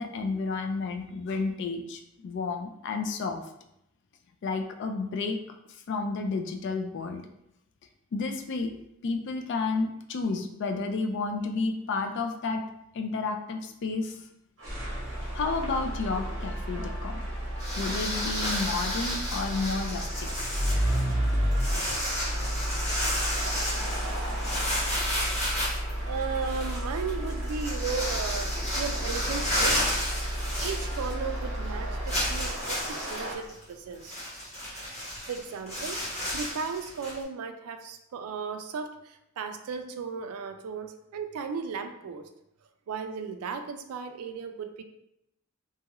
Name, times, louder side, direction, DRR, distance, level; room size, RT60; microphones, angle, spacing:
voice 1, 0.0-3.4 4.4-5.4 5.9-7.2 8.1-8.8 9.0-12.6 12.9-14.2 15.3-17.2 17.8-20.5, left 4 dB, 55° left, 5 dB, 0.3 m, -31 dB
sound 1, 14.6-32.9, equal, 15° right, 0.6 m, -32 dB
sound 2, 14.6-33.3, right 1 dB, 60° right, 0.9 m, -41 dB
sound 3, 17.6-31.4 31.6-31.7 32.1-37.2, equal, 30° left, 1.2 m, -32 dB
voice 2, 26.1-29.9 30.6-34.1 35.3-42.2 42.9-44.8, right 5 dB, 80° right, 7 dB, 0.3 m, -35 dB
2.7 x 2.3 x 2.9 m, 0.83 s
head